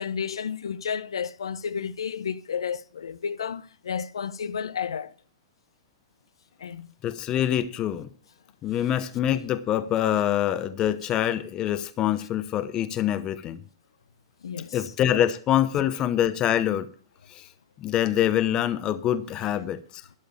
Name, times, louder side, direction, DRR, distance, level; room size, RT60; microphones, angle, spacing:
voice 1, 0.0-5.1 6.6-6.9 14.4-14.9 19.4-19.6, left 7 dB, 90° left, 0.6 m, -32 dB
voice 2, 7.0-8.1 8.6-13.6 14.7-16.9 17.3-17.5 17.8-19.8, left 11 dB, 30° left, 0.8 m, -25 dB
12.0 x 6.8 x 7.0 m
hypercardioid pair, 130°, 3 cm